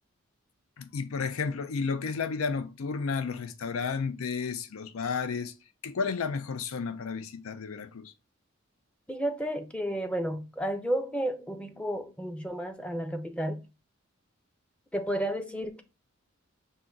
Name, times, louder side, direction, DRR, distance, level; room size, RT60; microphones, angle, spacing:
voice 1, 0.8-5.5 5.8-8.1, left 5 dB, 90° left, 0.5 m, -32 dB
voice 2, 9.1-13.6 14.9-15.8, right 1 dB, 5° left, 0.5 m, -32 dB
5.7 x 2.5 x 3.8 m
head